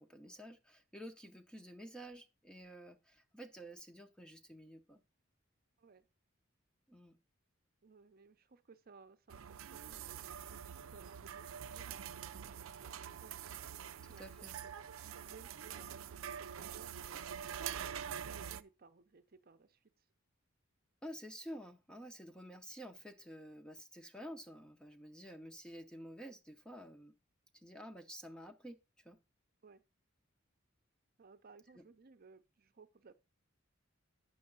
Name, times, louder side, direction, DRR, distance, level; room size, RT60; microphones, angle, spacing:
voice 1, 0.0-5.0 6.9-7.1 14.0-14.5 21.0-27.1 27.6-29.2 31.8-31.9, equal, 5° left, 0.7 m, -51 dB
voice 2, 7.8-10.4 10.9-13.5 14.1-14.7 15.3-19.8 29.6-29.8 31.2-33.1, right 4 dB, 50° right, 0.7 m, -61 dB
sound 1, 9.3-18.6, right 8 dB, 85° right, 0.5 m, -45 dB
8.8 x 6.4 x 3.8 m
head